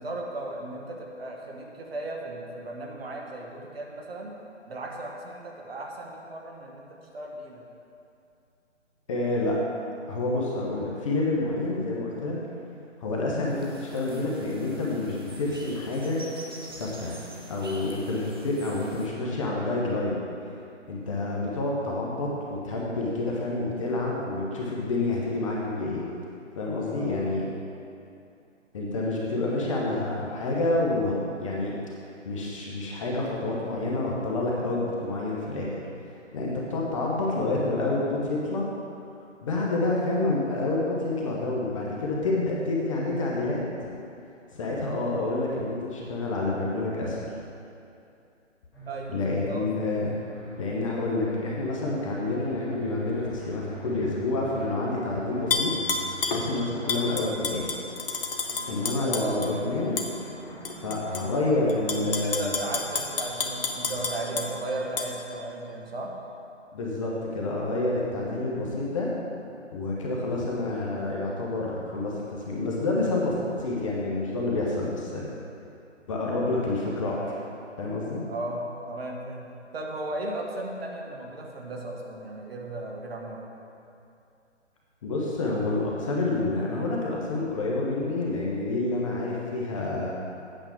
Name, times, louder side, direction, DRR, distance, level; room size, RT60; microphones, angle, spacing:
voice 1, 0.0-4.3 4.7-7.6 27.0-27.3 48.9-49.7 59.2-59.7 61.2-61.3 62.2-66.1 78.3-79.5 79.7-83.5, right 2 dB, 50° right, 0 dB, 1.5 m, -36 dB
voice 2, 9.1-9.6 10.1-12.4 13.0-17.2 17.5-20.2 20.9-26.0 26.5-27.4 28.7-31.1 31.4-31.7 32.2-35.9 36.3-38.7 39.4-43.6 44.5-47.3 49.1-50.1 50.6-55.7 56.3-57.6 58.7-59.9 60.7-62.6 66.7-69.1 69.7-75.3 76.1-77.4 77.8-78.2 85.0-90.1, left 2 dB, 25° left, -3 dB, 1.2 m, -28 dB
sound 1, 13.4-19.1, right 1 dB, 20° right, 0.5 m, -46 dB
sound 2, 48.7-64.7, right 1 dB, 5° left, 2.5 m, -44 dB
Tap / Glass, 55.5-56.4 56.9-59.5 60.0-60.1 60.6-61.2 61.7-64.5 65.0-65.1, left 4 dB, 45° left, 1.0 m, -29 dB
8.8 x 6.4 x 6.0 m, 2.6 s
figure-of-eight pair, 155°, 37 cm